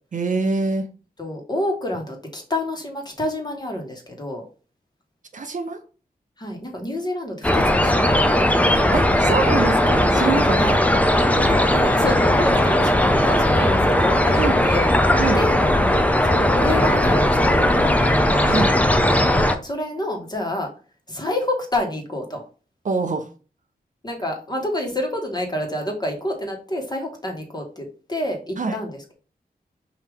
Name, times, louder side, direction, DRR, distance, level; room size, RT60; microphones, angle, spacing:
voice 1, 0.1-0.9 5.3-5.8 8.9-10.8 14.4-14.6 15.2-15.4 18.4-18.8 22.8-23.3 28.6-28.8, right 4 dB, 55° right, 6 dB, 0.7 m, -25 dB
voice 2, 1.2-4.4 6.4-8.9 10.6-10.8 11.4-14.9 15.3-15.6 16.2-18.1 19.6-20.7 21.1-22.4 24.0-29.1, left 1 dB, 25° left, 2 dB, 1.4 m, -28 dB
sound 1, 7.4-19.6, left 1 dB, 10° left, 0.5 m, -18 dB
4.7 x 2.8 x 3.5 m, 0.36 s
wide cardioid pair, 75°, 16 cm